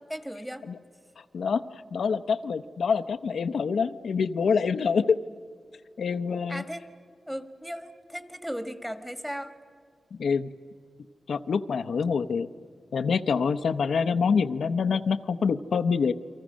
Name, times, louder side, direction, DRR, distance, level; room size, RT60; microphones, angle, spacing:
voice 1, 0.1-0.6 6.5-6.8 7.3-9.5, equal, 5° right, 9 dB, 1.6 m, -36 dB
voice 2, 1.9-5.2 6.0-6.6 10.1-10.5 11.3-12.5 12.9-16.1, left 5 dB, 80° left, 10 dB, 0.7 m, -26 dB
29.5 x 24.0 x 6.3 m, 2.1 s
wide cardioid pair, 125°, 0 cm